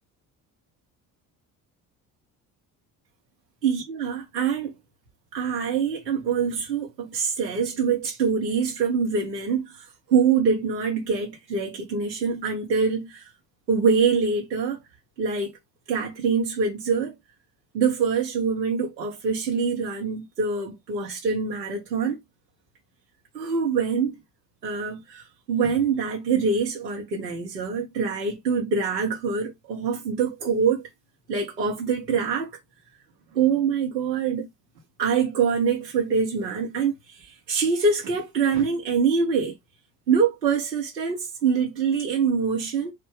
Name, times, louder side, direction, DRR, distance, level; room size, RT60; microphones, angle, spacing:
voice 1, 3.6-4.8 5.3-13.3 13.7-14.8 15.2-15.5 15.9-17.1 17.7-22.2 23.3-24.2 24.6-30.8 31.3-32.5 33.3-34.5 35.0-37.2 37.5-39.5 40.1-42.9, right 5 dB, 85° right, 1.0 m, -24 dB
4.7 x 2.2 x 4.7 m
figure-of-eight pair, 50°, 49 cm